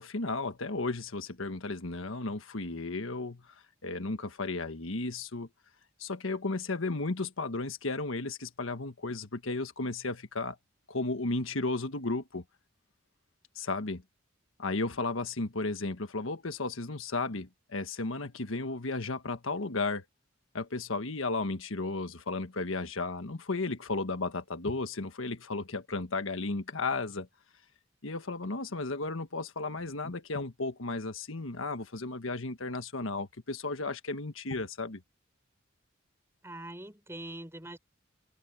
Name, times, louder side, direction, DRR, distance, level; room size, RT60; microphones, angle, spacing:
voice 1, 0.0-3.5 3.8-5.5 6.0-10.6 10.9-12.4 13.5-14.0 14.6-20.0 20.5-27.3 28.0-35.0, left 3 dB, 85° left, 1.4 m, -34 dB
voice 2, 36.4-37.8, right 1 dB, 15° right, 5.6 m, -43 dB
head